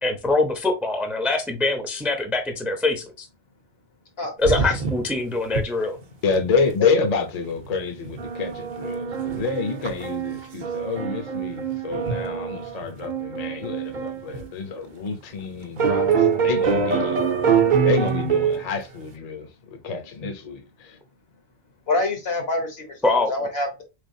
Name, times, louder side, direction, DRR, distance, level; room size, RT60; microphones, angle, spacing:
voice 1, 0.0-3.3 4.4-6.0 23.0-23.3, left 2 dB, ahead, 0.5 m, -23 dB
sound 1, 4.4-5.2 5.5-5.6 6.0-6.1 6.3-6.7 7.6-7.8 8.0-14.5 15.1-15.2 15.8-18.7, right 6 dB, 55° right, 0.8 m, -24 dB
voice 2, 6.2-17.2 17.8-21.0, left 4 dB, 45° left, 0.7 m, -28 dB
voice 3, 21.9-23.8, left 2 dB, 70° left, 1.3 m, -26 dB
3.8 x 3.4 x 2.6 m
omnidirectional pair, 1.1 m